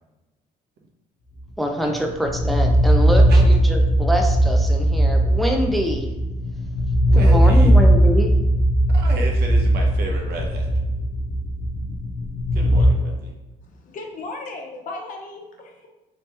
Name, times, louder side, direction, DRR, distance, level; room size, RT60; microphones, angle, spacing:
voice 1, 1.6-6.1 7.1-8.3, equal, ahead, 2 dB, 0.4 m, -25 dB
sound 1, 1.8-12.9, right 1 dB, 90° left, 0.6 m, -18 dB
voice 2, 7.0-7.8 8.9-10.7 12.5-13.3, right 2 dB, 70° right, 1 dB, 0.8 m, -32 dB
voice 3, 13.6-15.9, left 2 dB, 50° left, 2 dB, 0.7 m, -36 dB
3.1 x 2.9 x 3.3 m, 1.1 s
cardioid pair, 110°, 17 cm